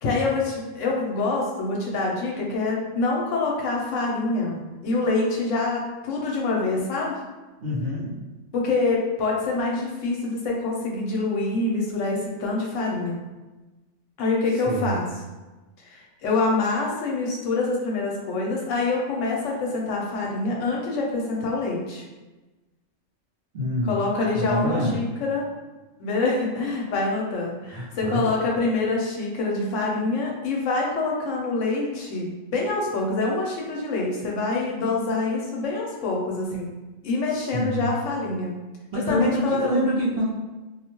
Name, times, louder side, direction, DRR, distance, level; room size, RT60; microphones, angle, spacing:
voice 1, 0.0-7.2 8.5-13.2 14.2-15.1 15.9-22.0 23.8-25.4 26.0-36.7 37.0-38.5 38.9-39.9, left 3 dB, 75° left, -2 dB, 0.9 m, -26 dB
voice 2, 7.6-8.2 14.6-15.0 23.5-24.0 24.3-25.0 27.6-28.3 37.3-37.9 38.9-40.2, equal, 55° right, -7 dB, 0.8 m, -26 dB
2.4 x 2.1 x 2.9 m, 1.2 s
omnidirectional pair, 1.4 m